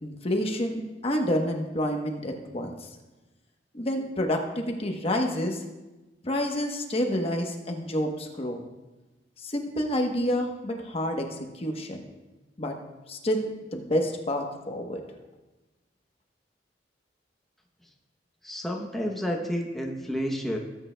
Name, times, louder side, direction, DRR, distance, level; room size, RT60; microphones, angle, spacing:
voice 1, 0.0-2.7 3.7-5.6 6.2-8.6 9.4-12.1 12.6-12.7 13.1-15.0, equal, 35° left, 3 dB, 1.0 m, -28 dB
voice 2, 18.4-20.6, equal, ahead, 0 dB, 0.8 m, -30 dB
18.0 x 8.7 x 2.2 m, 1.1 s
head